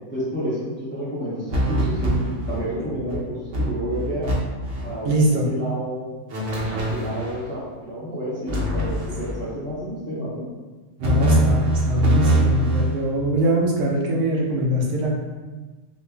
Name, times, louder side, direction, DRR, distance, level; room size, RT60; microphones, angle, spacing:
voice 1, 0.1-4.3 4.8-6.1 6.7-10.5, equal, 15° left, -9 dB, 0.4 m, -30 dB
sound 1, 1.5-2.7 3.1-3.2 3.5-4.3 4.6-4.9 6.3-7.4 8.5-9.4 11.0-13.0, right 1 dB, 60° right, 1.0 m, -23 dB
voice 2, 5.0-5.5 11.0-15.1, equal, 80° right, -3 dB, 1.2 m, -22 dB
4.0 x 2.6 x 2.3 m, 1.3 s
omnidirectional pair, 1.6 m